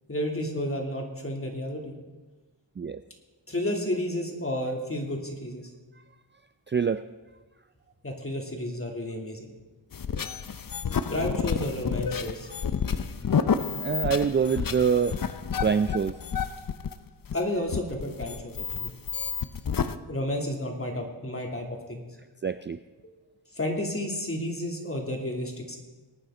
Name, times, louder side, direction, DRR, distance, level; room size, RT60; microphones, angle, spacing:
voice 1, 0.1-1.9 3.5-5.7 8.0-9.5 11.1-12.5 17.3-18.9 20.1-22.1 23.6-25.8, left 1 dB, 30° left, 1 dB, 2.9 m, -31 dB
voice 2, 6.7-7.0 13.7-15.2 15.6-16.1 22.4-22.8, right 6 dB, 25° right, 11 dB, 0.4 m, -25 dB
sound 1, 9.9-20.0, left 6 dB, 45° left, 0.7 m, -30 dB
23.0 x 9.4 x 3.9 m, 1.2 s
cardioid pair, 60°, 45 cm